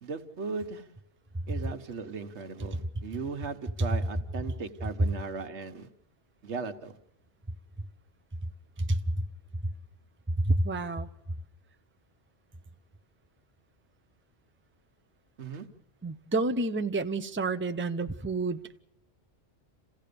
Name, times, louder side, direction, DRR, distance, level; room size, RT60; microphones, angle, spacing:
voice 1, 0.0-0.9 1.5-5.9 6.4-7.0 15.4-15.7, right 4 dB, 90° right, 1.5 m, -37 dB
voice 2, 8.9-9.2 10.4-11.1 16.0-18.8, right 2 dB, 15° right, 0.6 m, -29 dB
27.5 x 16.0 x 6.8 m
omnidirectional pair, 1.1 m